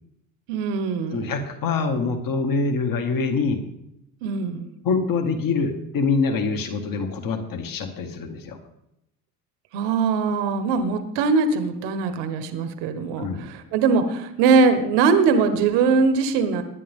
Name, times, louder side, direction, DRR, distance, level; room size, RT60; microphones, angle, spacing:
voice 1, 0.5-1.3 4.2-4.7 9.7-16.6, right 4 dB, 80° right, 9 dB, 1.4 m, -21 dB
voice 2, 1.1-3.6 4.8-8.6 13.2-13.5, left 4 dB, 55° left, 4 dB, 2.2 m, -25 dB
19.5 x 9.8 x 3.7 m, 0.83 s
supercardioid pair, 80°, 40 cm